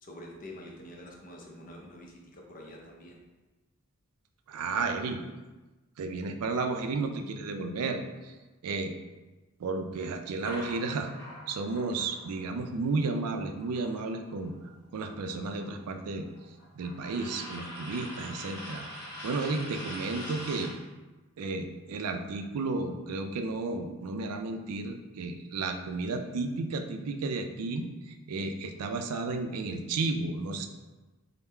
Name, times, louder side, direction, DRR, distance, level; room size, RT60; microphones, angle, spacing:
voice 1, 0.0-3.2, left 1 dB, 40° left, 0 dB, 0.6 m, -47 dB
voice 2, 4.5-5.2 6.0-8.3 8.6-8.9 9.6-11.1 11.5-14.5 14.9-16.3 16.8-18.8 19.2-20.7 21.4-30.7, right 3 dB, 80° right, 6 dB, 0.4 m, -33 dB
sound 1, 10.4-14.5 14.8-20.8, left 1 dB, 20° left, 1.4 m, -44 dB
3.6 x 2.0 x 4.3 m, 1.2 s
head